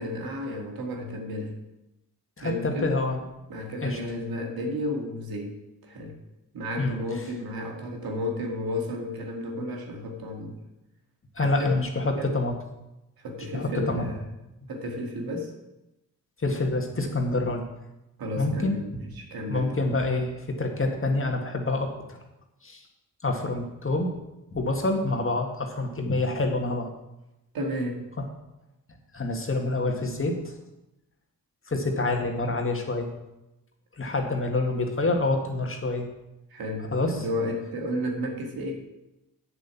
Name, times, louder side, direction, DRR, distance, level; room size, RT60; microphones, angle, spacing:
voice 1, 0.0-1.5 2.4-3.0 3.5-6.2 6.5-10.6 11.4-11.7 12.2-12.3 13.2-14.2 14.7-15.5 18.2-19.8 27.5-28.0 36.5-38.8, left 1 dB, 75° right, 2 dB, 2.1 m, -32 dB
voice 2, 2.4-3.2 3.8-4.0 6.8-7.0 11.4-12.5 13.5-14.1 16.4-17.6 18.4-18.8 19.5-22.2 22.6-22.8 23.2-24.1 24.5-26.9 28.2-28.3 29.1-30.5 31.7-33.1 34.0-36.1 36.9-37.2, left 2 dB, 35° left, 3 dB, 1.9 m, -27 dB
8.3 x 6.9 x 7.2 m, 0.93 s
cardioid pair, 60°, 36 cm